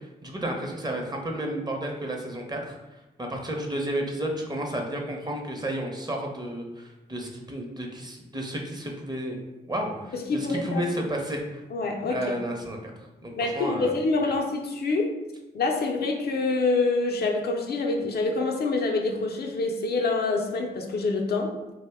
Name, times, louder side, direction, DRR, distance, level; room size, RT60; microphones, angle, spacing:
voice 1, 0.2-2.8 3.2-9.4 9.6-11.6 12.1-12.9 13.2-13.9, right 1 dB, 20° right, 1 dB, 0.7 m, -32 dB
voice 2, 10.1-10.8 11.7-12.3 13.4-15.2 15.5-21.6, left 3 dB, 60° left, 2 dB, 0.4 m, -26 dB
2.5 x 2.1 x 3.4 m, 1.0 s
supercardioid pair, 45°, 18 cm